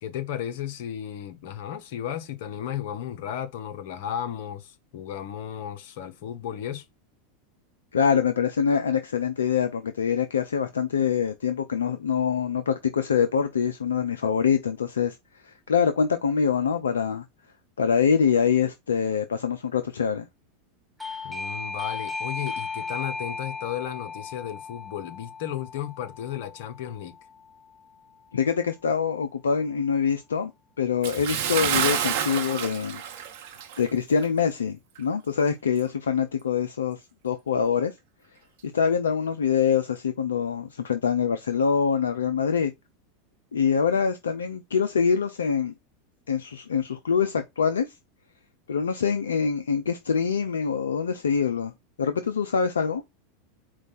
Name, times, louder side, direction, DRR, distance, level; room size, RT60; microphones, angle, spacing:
voice 1, 0.0-6.8 21.2-27.1, left 10 dB, 60° left, 0.8 m, -34 dB
voice 2, 7.9-15.2 15.4-17.3 17.8-20.3 28.3-30.5 30.8-33.0 33.8-37.9 38.6-42.7 43.5-45.7 46.3-47.9 48.7-51.7 52.0-53.0, left 6 dB, 75° left, 0.4 m, -24 dB
Doorbell, 21.0-27.5, left 4 dB, ahead, 0.8 m, -36 dB
Bathtub (filling or washing) / Splash splatter, 31.0-33.9 34.2-34.4 35.0-35.1, right 9 dB, 55° right, 0.8 m, -28 dB
4.5 x 2.3 x 4.1 m
figure-of-eight pair, 85°, 0 cm